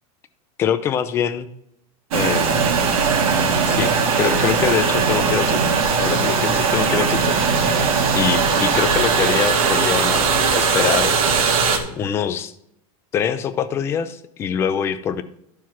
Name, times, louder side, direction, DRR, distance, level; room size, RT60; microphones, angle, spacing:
voice 1, 0.6-1.5 2.1-2.8 3.6-7.8 8.1-11.2 11.9-12.5 13.1-15.2, left 8 dB, 15° left, 12 dB, 0.3 m, -24 dB
sound 1, 2.1-11.8, right 5 dB, 80° right, 1.8 m, -19 dB
11.5 x 4.7 x 5.7 m, 0.77 s
supercardioid pair, 175°, 18 cm